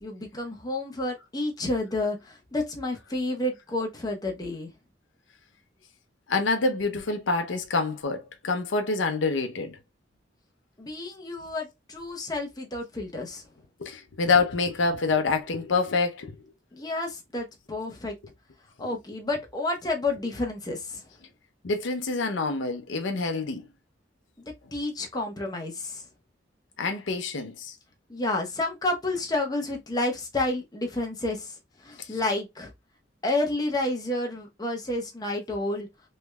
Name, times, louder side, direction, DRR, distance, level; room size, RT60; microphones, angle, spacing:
voice 1, 0.0-4.7 10.8-13.4 16.7-18.1 18.8-21.0 24.7-26.0 28.1-31.5 31.8-32.7 33.2-35.9, left 2 dB, 20° left, 0.8 m, -30 dB
voice 2, 6.3-9.8 13.8-16.3 21.6-23.6 26.8-27.7 32.0-32.1, left 3 dB, 85° left, 0.6 m, -26 dB
3.3 x 3.2 x 2.2 m
head